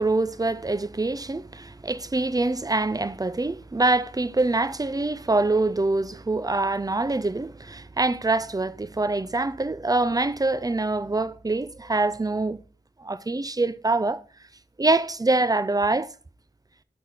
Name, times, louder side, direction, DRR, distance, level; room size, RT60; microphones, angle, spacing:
voice 1, 0.0-12.6 13.0-14.2 14.8-16.1, right 2 dB, 20° right, 0.6 m, -25 dB
12.0 x 4.4 x 4.9 m
wide cardioid pair, 45°, 17 cm